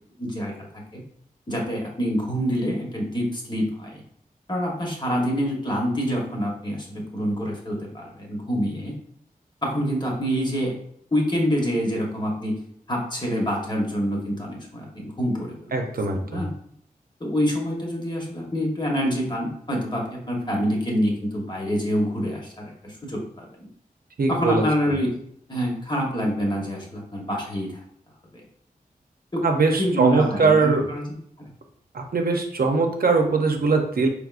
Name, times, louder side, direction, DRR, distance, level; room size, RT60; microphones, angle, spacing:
voice 1, 0.2-0.5 0.9-1.0 1.5-4.0 4.5-8.9 9.6-10.7 11.1-12.6 12.9-15.7 16.2-16.5 17.2-23.7 24.3-25.1 25.5-27.8 29.3-29.4 29.8-31.0, equal, 30° left, -2 dB, 1.1 m, -26 dB
voice 2, 15.7-16.4 24.2-25.0 29.4-30.8 31.9-34.1, right 4 dB, 75° right, 3 dB, 0.6 m, -21 dB
4.8 x 3.4 x 2.5 m, 0.67 s
wide cardioid pair, 95°, 15 cm